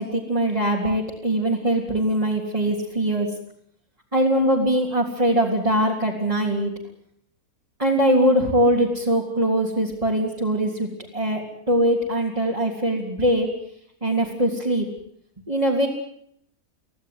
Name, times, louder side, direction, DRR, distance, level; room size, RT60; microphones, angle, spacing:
voice 1, 0.0-3.3 4.1-6.7 7.8-13.5 14.0-14.9 15.5-15.9, right 1 dB, 20° right, -3 dB, 3.5 m, -22 dB
25.5 x 16.5 x 9.4 m, 0.71 s
omnidirectional pair, 1.6 m